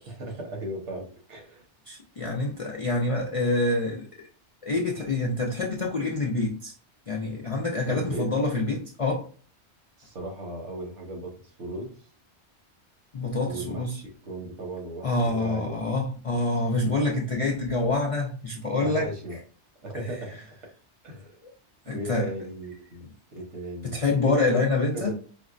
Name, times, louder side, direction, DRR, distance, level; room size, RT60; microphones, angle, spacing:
voice 1, 0.0-1.6 7.9-8.3 10.0-11.9 13.5-15.7 18.8-19.4 19.8-20.3 21.0-21.4 21.9-24.6 24.9-25.1, right 1 dB, 80° right, 1.3 m, -37 dB
voice 2, 1.9-4.1 4.6-6.7 7.1-9.3 13.1-14.0 15.0-19.1 19.9-20.1 21.4-21.5 21.9-22.3 23.8-25.1, left 2 dB, 60° left, 0.3 m, -26 dB
4.9 x 2.0 x 2.4 m
omnidirectional pair, 1.2 m